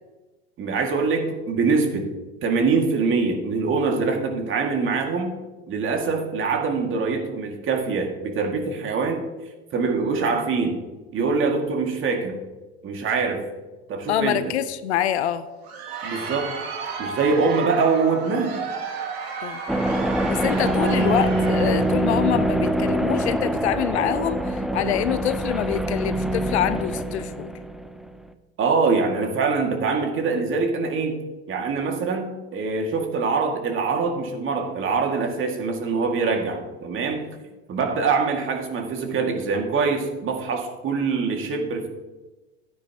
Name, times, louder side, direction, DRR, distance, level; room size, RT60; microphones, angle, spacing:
voice 1, 0.6-2.1 2.4-5.4 5.7-9.2 9.7-10.8 11.1-12.4 12.8-13.4 13.9-14.4 16.0-16.5 17.0-18.6 20.8-21.2 28.6-31.2 31.5-37.2 37.7-41.9, right 4 dB, 40° right, 2 dB, 2.1 m, -24 dB
voice 2, 14.1-15.5 19.4-19.6 20.3-27.5, left 11 dB, 80° left, 13 dB, 0.7 m, -25 dB
Crowd, 15.5-22.0, right 5 dB, 70° right, 2.4 m, -33 dB
sound 1, 19.7-28.3, right 1 dB, ahead, 0.6 m, -24 dB
12.5 x 9.8 x 2.9 m, 1.1 s
hypercardioid pair, 85°, 32 cm